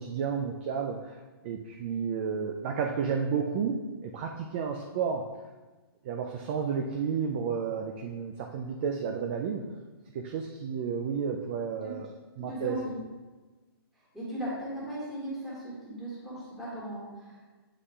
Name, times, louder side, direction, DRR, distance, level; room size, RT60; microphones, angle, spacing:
voice 1, 0.0-5.3 6.0-9.7 10.1-12.1 12.4-12.9, right 6 dB, 25° right, 3 dB, 0.3 m, -32 dB
voice 2, 11.7-12.0 12.4-13.0 14.1-17.4, equal, 5° right, -9 dB, 1.9 m, -37 dB
8.2 x 5.5 x 2.3 m, 1.3 s
hypercardioid pair, 155°, 13 cm